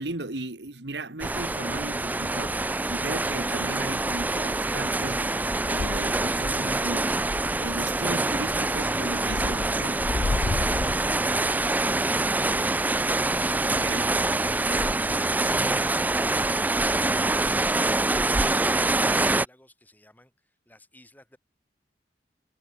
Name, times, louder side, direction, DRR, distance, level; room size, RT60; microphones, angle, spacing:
voice 1, 0.0-5.4 5.7-10.0 13.7-14.1, right 2 dB, 70° right, 2.0 m, -36 dB
sound 1, 1.2-19.4, right 2 dB, 10° right, 0.3 m, -25 dB
sound 2, 5.5-6.4 6.7-7.8 8.4-8.8 9.2-11.6 14.6-15.8 16.8-17.1 17.4-17.8 18.9-19.0, left 3 dB, 85° left, 0.7 m, -33 dB
voice 2, 10.9-11.0, left 1 dB, 10° left, 4.9 m, -54 dB
head